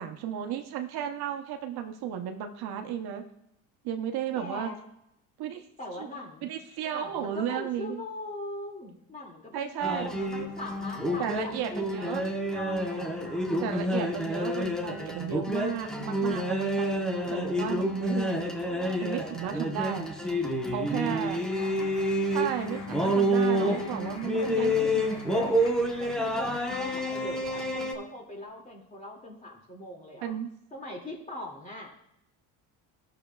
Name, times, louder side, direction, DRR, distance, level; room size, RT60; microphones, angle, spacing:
voice 1, 0.0-3.3 3.8-4.7 5.4-5.6 6.0-6.1 6.4-8.0 9.5-10.1 11.2-12.2 13.6-18.6 19.0-20.3 20.7-21.4 22.3-25.0 30.2-30.5, right 9 dB, 65° right, 5 dB, 0.9 m, -34 dB
voice 2, 4.4-4.8 5.8-6.5 6.8-13.6 21.4-21.9 23.6-24.0 24.3-24.9 25.3-25.6 26.0-30.3 30.7-32.0, left 1 dB, 20° left, -1 dB, 2.4 m, -41 dB
sound 1, 9.8-27.9, equal, ahead, 1.0 m, -29 dB
Clapping, 20.6-27.6, left 2 dB, 60° left, 3.7 m, -49 dB
13.5 x 6.6 x 2.3 m, 0.80 s
supercardioid pair, 105°, 42 cm